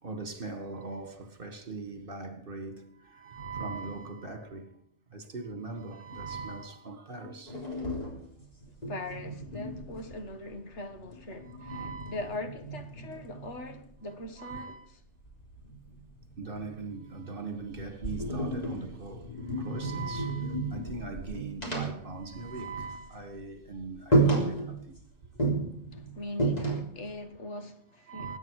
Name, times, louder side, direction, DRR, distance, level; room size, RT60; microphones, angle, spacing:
voice 1, 0.0-4.8 5.1-7.7 11.5-12.2 13.1-13.3 14.4-14.9 16.4-25.0 28.1-28.4, right 3 dB, 50° right, 2.1 m, -40 dB
sound 1, 7.5-10.6 10.9-13.9 15.2-17.2 17.6-23.0 23.2-23.4 23.8-23.9 24.1-25.0 25.4-27.1, right 2 dB, 35° left, 3.7 m, -32 dB
voice 2, 8.9-14.8 25.9-28.4, left 1 dB, 90° left, 1.9 m, -41 dB
21.5 x 9.3 x 4.9 m
omnidirectional pair, 1.2 m